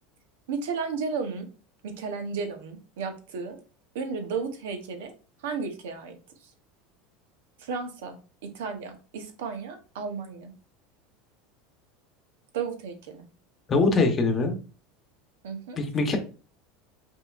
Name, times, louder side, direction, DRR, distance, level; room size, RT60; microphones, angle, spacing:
voice 1, 0.5-1.5 1.8-3.6 3.9-5.1 5.4-6.2 7.6-8.2 8.5-10.5 12.5-13.2 15.4-15.8, right 5 dB, 85° right, 6 dB, 0.9 m, -33 dB
voice 2, 13.7-14.6 15.8-16.2, left 3 dB, 25° left, 5 dB, 0.9 m, -22 dB
5.5 x 2.7 x 2.5 m, 0.36 s
supercardioid pair, 125°, 0 cm